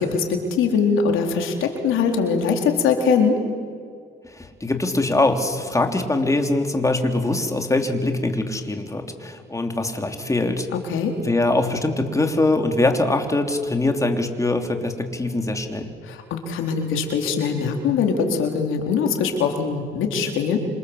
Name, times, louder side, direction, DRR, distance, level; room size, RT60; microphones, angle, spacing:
voice 1, 0.0-3.4 10.8-11.2 16.0-20.6, left 5 dB, 85° left, 3 dB, 4.0 m, -22 dB
voice 2, 4.2-10.7 11.2-15.9, left 2 dB, 15° left, 4 dB, 3.5 m, -22 dB
27.0 x 27.0 x 8.1 m, 2.2 s
cardioid pair, 90°, 20 cm